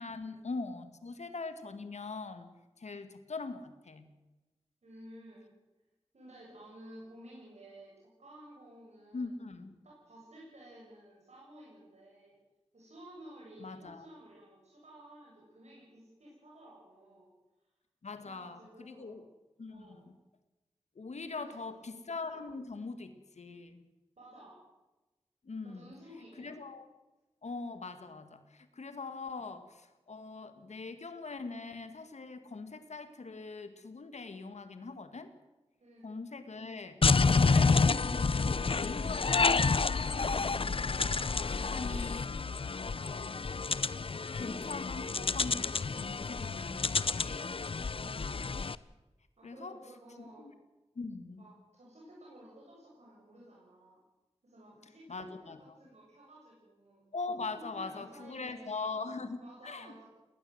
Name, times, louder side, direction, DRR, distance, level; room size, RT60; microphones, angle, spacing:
voice 1, 0.0-4.1 9.1-9.7 13.6-14.1 18.0-19.3 19.6-20.1 21.0-23.9 25.4-25.9 26.4-26.9 27.4-35.3 36.0-42.3 42.8-43.3 44.4-47.6 49.4-49.8 50.4-50.5 51.0-51.5 55.1-55.8 57.1-60.0, left 3 dB, 85° left, 10 dB, 1.9 m, -42 dB
voice 2, 4.8-5.5 6.1-9.3 9.8-12.4 12.7-17.3 18.2-19.2 19.7-20.1 21.3-21.9 24.2-24.6 25.6-26.5 35.8-36.1 47.9-48.3 49.4-50.5 51.4-54.0 54.4-55.5 55.8-57.0 57.7-58.9 59.4-60.0, right 1 dB, 80° right, -5 dB, 7.6 m, -53 dB
Complex Organ, 37.0-48.8, left 4 dB, 55° left, 0.6 m, -29 dB
19.5 x 19.5 x 8.0 m, 1.1 s
wide cardioid pair, 80°, 11 cm